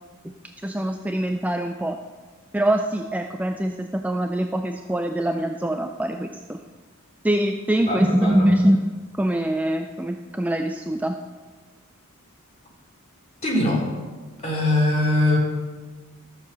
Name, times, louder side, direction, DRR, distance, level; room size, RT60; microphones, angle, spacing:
voice 1, 0.6-2.0 2.5-6.6 7.2-11.2, right 1 dB, 5° right, 5 dB, 0.4 m, -23 dB
voice 2, 7.9-8.5 13.4-13.8 14.4-15.4, left 1 dB, 30° left, -1 dB, 2.8 m, -22 dB
13.5 x 6.7 x 6.7 m, 1.4 s
head